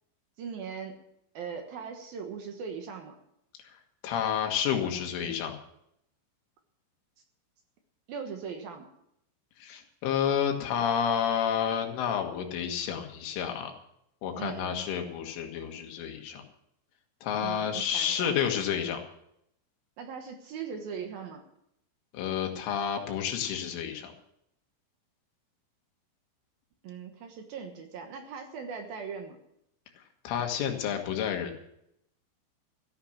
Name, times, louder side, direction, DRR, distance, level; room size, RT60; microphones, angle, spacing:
voice 1, 0.4-1.0 1.3-3.1 8.1-8.9 14.4-14.8 17.4-18.3 20.0-21.4 26.8-29.4, right 6 dB, 70° right, 4 dB, 2.2 m, -39 dB
voice 2, 4.0-5.6 9.6-13.7 14.2-16.4 17.2-19.0 22.1-24.1 30.3-31.6, left 8 dB, 70° left, 3 dB, 4.0 m, -30 dB
14.5 x 9.5 x 7.3 m, 0.77 s
omnidirectional pair, 6.0 m